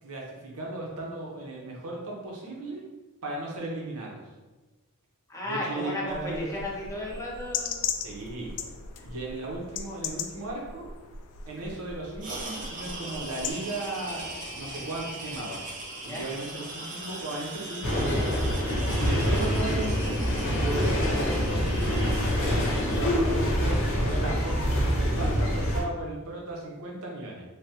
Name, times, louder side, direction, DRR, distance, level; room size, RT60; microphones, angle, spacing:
voice 1, 0.0-2.8 3.2-4.2 5.4-6.5 8.0-8.5 9.0-10.9 11.5-15.6 16.0-17.9 19.0-20.2 20.6-22.1 22.9-27.4, right 2 dB, 70° right, -2 dB, 0.7 m, -36 dB
voice 2, 5.3-7.9 9.0-9.1 16.1-16.3, left 1 dB, 15° left, -4 dB, 0.6 m, -34 dB
sound 1, 6.1-13.5, left 7 dB, 80° left, 0.3 m, -37 dB
sound 2, 12.2-23.0, right 2 dB, 35° right, 0.5 m, -39 dB
sound 3, 17.8-25.8, equal, 60° left, 0.7 m, -25 dB
3.3 x 2.2 x 2.7 m, 1.2 s
head